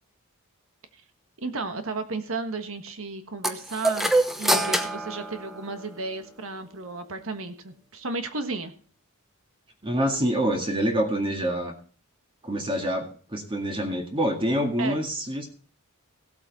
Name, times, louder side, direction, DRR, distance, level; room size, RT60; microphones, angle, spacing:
voice 1, 1.4-8.7 14.8-15.0, right 3 dB, 65° right, 7 dB, 1.4 m, -33 dB
sound 1, 3.4-6.1, right 1 dB, ahead, 0.9 m, -26 dB
voice 2, 9.8-11.7 12.4-15.5, equal, 25° right, 2 dB, 1.9 m, -26 dB
16.5 x 8.2 x 4.1 m, 0.43 s
head